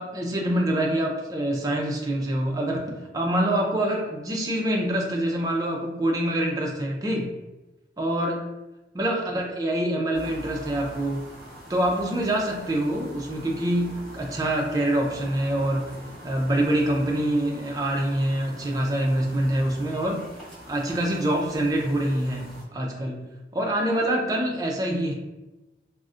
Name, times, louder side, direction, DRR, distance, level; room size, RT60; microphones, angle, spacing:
voice 1, 0.0-7.3 8.0-8.4 8.9-11.2 11.7-15.9 16.2-20.3 20.7-23.2 23.5-25.1, right 1 dB, 20° right, 0 dB, 0.4 m, -25 dB
sound 1, 10.1-22.6, equal, ahead, 1.2 m, -44 dB
3.7 x 2.1 x 2.4 m, 1.0 s
head